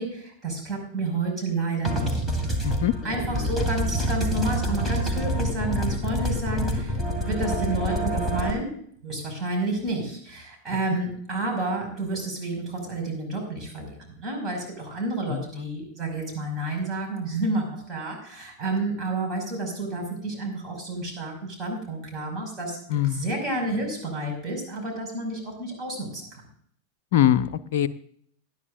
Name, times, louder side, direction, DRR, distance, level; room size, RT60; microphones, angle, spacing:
voice 1, 0.0-2.2 3.0-8.7 9.0-22.8 23.1-26.5, right 2 dB, 25° right, 0 dB, 5.8 m, -30 dB
sound 1, 1.8-8.5, equal, 5° right, 2.3 m, -26 dB
voice 2, 15.3-15.7 22.9-23.3 27.1-27.9, left 11 dB, 55° left, 10 dB, 0.6 m, -23 dB
19.5 x 12.0 x 2.6 m, 0.63 s
figure-of-eight pair, 90°, 0 cm